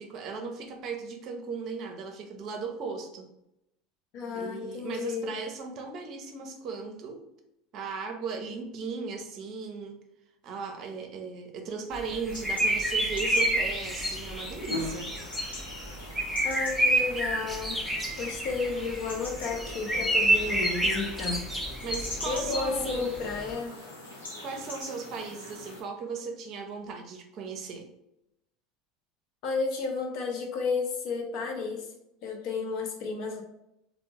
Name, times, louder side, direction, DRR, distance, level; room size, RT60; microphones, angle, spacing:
voice 1, 0.0-3.3 4.3-7.2 7.7-10.0 10.4-15.1 21.8-23.1 24.4-27.9, right 5 dB, 50° right, 4 dB, 0.6 m, -37 dB
voice 2, 4.1-5.3 16.4-17.8 18.2-21.4 22.3-23.7 29.4-31.9 32.2-33.4, left 4 dB, 55° left, 1 dB, 0.7 m, -32 dB
sound 1, 11.9-23.5, right 1 dB, ahead, 0.6 m, -29 dB
sound 2, 12.3-25.8, left 1 dB, 90° left, 0.8 m, -42 dB
3.3 x 2.0 x 3.0 m, 0.84 s
figure-of-eight pair, 75°, 0 cm